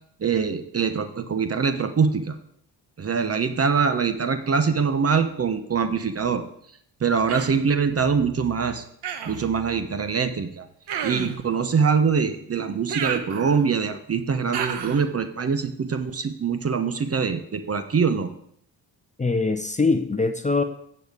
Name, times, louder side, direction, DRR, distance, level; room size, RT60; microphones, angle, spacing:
voice 1, 0.2-2.3 3.0-6.4 7.0-8.8 9.2-10.7 11.0-18.3, right 5 dB, 35° right, 10 dB, 1.0 m, -23 dB
Human voice, 7.3-7.7 9.0-9.5 10.9-11.4 12.9-13.8 14.5-15.1, right 8 dB, 65° right, 1.1 m, -31 dB
voice 2, 19.2-20.6, left 3 dB, 15° left, 8 dB, 0.8 m, -22 dB
9.3 x 6.9 x 5.0 m, 0.67 s
cardioid pair, 75°, 43 cm